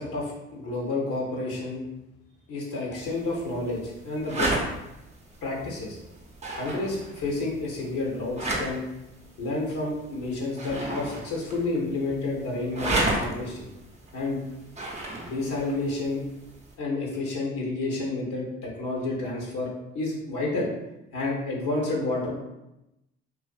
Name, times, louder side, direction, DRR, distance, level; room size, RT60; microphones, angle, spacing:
voice 1, 0.0-1.8 2.5-4.5 5.4-6.0 6.5-8.8 9.4-13.7 14.1-14.4 15.2-16.2 16.8-20.7 21.1-22.4, left 2 dB, 65° left, -3 dB, 0.9 m, -30 dB
sound 1, 2.9-16.7, right 2 dB, 20° right, 0.7 m, -34 dB
2.5 x 2.4 x 2.3 m, 0.90 s
hypercardioid pair, 55°, 33 cm